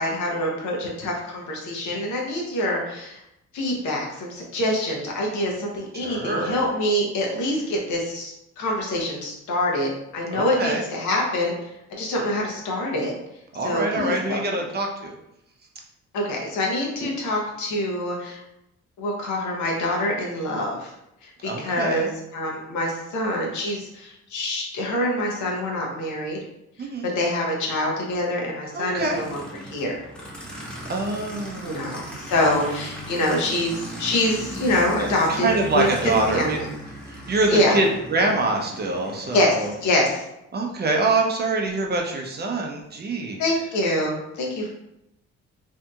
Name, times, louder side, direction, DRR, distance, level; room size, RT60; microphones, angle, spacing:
voice 1, 0.0-3.2 3.5-11.5 11.9-13.1 13.6-14.6 16.1-18.4 19.0-20.9 21.2-26.4 26.8-26.9 27.1-30.0 31.6-35.5 35.7-35.9 36.3-36.7 37.5-37.8 39.3-40.2 43.4-44.7, left 1 dB, 75° left, -1 dB, 0.9 m, -25 dB
voice 2, 5.9-6.6 10.3-10.8 13.5-15.1 21.4-22.1 26.8-27.1 28.7-29.2 30.9-32.3 35.3-36.6 37.1-39.7 40.5-43.4, right 2 dB, 35° right, 1 dB, 0.5 m, -25 dB
Aircraft, 28.9-40.1, right 1 dB, 5° left, 0.7 m, -37 dB
2.7 x 2.6 x 2.3 m, 0.85 s
cardioid pair, 90°, 30 cm